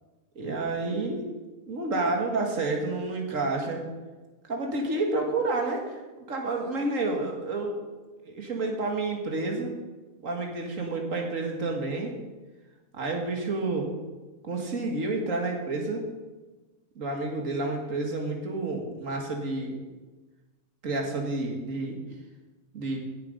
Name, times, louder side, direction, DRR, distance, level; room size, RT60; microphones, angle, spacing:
voice 1, 0.4-1.2 1.7-3.8 4.5-7.8 8.2-9.7 10.2-12.1 12.9-13.9 14.4-16.0 17.0-19.8 20.8-22.0 22.7-23.0, right 2 dB, 70° right, 1 dB, 2.2 m, -29 dB
16.0 x 7.4 x 5.4 m, 1.2 s
omnidirectional pair, 1.4 m